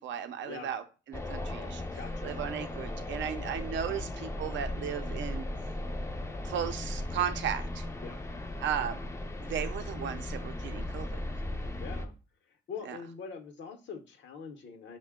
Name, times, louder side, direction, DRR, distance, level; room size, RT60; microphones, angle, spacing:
voice 1, 0.0-1.8 2.2-5.5 6.4-7.8 8.6-9.1 9.4-11.2 12.8-13.0, right 9 dB, 70° right, 0.6 m, -35 dB
sound 1, 1.1-12.1, left 1 dB, 15° left, 0.4 m, -37 dB
voice 2, 2.0-2.3 3.8-4.0 8.0-8.2 11.8-12.1 12.7-15.0, left 6 dB, 65° left, 0.8 m, -43 dB
5.5 x 2.2 x 3.5 m
cardioid pair, 90°, 20 cm